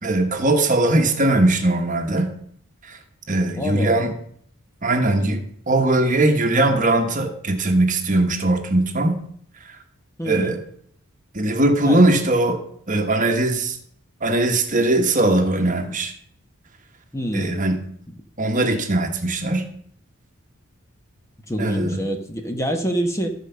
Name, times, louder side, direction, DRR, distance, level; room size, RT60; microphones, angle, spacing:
voice 1, 0.0-2.3 2.9-3.0 3.3-4.1 4.8-5.4 5.7-9.2 10.3-10.6 11.3-12.6 12.9-13.8 14.2-16.1 17.3-17.8 18.4-19.7 21.6-22.0, right 2 dB, 35° right, 5 dB, 1.2 m, -20 dB
voice 2, 3.6-4.0 10.2-10.6 11.8-12.0 17.1-17.6 21.5-23.3, equal, 15° left, 4 dB, 1.1 m, -26 dB
14.0 x 5.0 x 6.7 m, 0.64 s
head